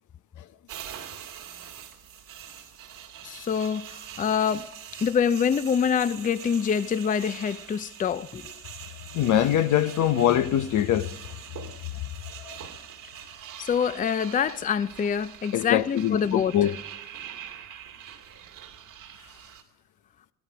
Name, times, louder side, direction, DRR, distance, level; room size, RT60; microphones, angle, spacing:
sound 1, 0.7-19.6, right 9 dB, 90° right, 2.4 m, -43 dB
voice 1, 3.2-8.5 13.6-16.6, left 7 dB, 25° left, 0.4 m, -26 dB
voice 2, 9.1-11.1 12.4-12.6 15.5-16.8, left 11 dB, 75° left, 0.8 m, -23 dB
16.5 x 13.5 x 6.1 m
cardioid pair, 90°, 30 cm